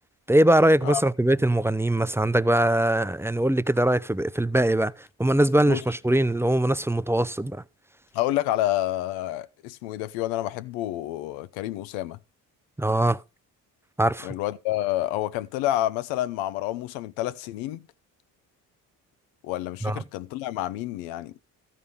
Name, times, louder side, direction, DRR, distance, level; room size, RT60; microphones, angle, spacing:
voice 1, 0.3-4.9 5.2-7.6 12.8-13.2 14.0-14.3 19.8-20.0, right 1 dB, 5° right, 0.5 m, -22 dB
voice 2, 8.1-12.2 14.2-17.8 19.4-21.3, left 14 dB, 80° left, 0.7 m, -29 dB
14.0 x 5.0 x 5.4 m
hypercardioid pair, 45°, 44 cm